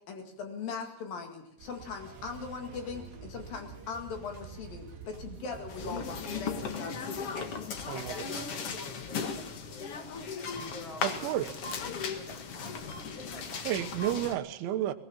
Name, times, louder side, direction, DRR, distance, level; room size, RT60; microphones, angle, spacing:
voice 1, 0.1-7.2, left 5 dB, 55° left, 4 dB, 3.5 m, -40 dB
sound 1, 1.6-6.7, right 8 dB, 70° right, 3.5 m, -49 dB
sound 2, 2.0-8.7, right 1 dB, 15° right, 2.7 m, -52 dB
sound 3, 5.7-14.3, left 5 dB, 75° left, 1.3 m, -37 dB
voice 2, 7.9-11.3 11.8-13.9, equal, 35° left, 2 dB, 2.7 m, -48 dB
voice 3, 11.0-11.6 13.7-14.9, right 12 dB, 90° right, 10 dB, 3.6 m, -31 dB
19.5 x 18.5 x 7.3 m, 0.73 s
omnidirectional pair, 5.3 m